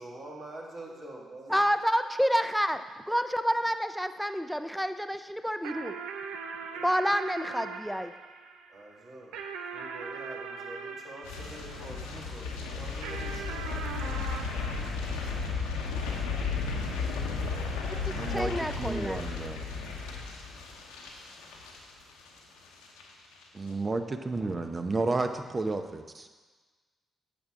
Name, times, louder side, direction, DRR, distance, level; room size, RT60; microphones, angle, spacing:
voice 1, 0.0-1.6 6.7-6.9 8.7-9.4 9.7-14.0 16.7-16.8 23.7-23.8 24.4-24.7, right 1 dB, 55° right, -2 dB, 1.9 m, -46 dB
voice 2, 1.5-5.9 6.8-8.1 18.0-19.2, equal, ahead, 10 dB, 0.5 m, -29 dB
sound 1, 5.6-12.3 13.0-15.8, right 5 dB, 85° right, 0.6 m, -41 dB
sound 2, 11.2-22.4 22.6-23.0 23.3-23.4, left 4 dB, 90° left, 0.9 m, -34 dB
voice 3, 18.1-19.6 23.5-26.3, right 3 dB, 35° right, 7 dB, 0.8 m, -32 dB
8.5 x 7.0 x 3.7 m, 1.3 s
hypercardioid pair, 45°, 0 cm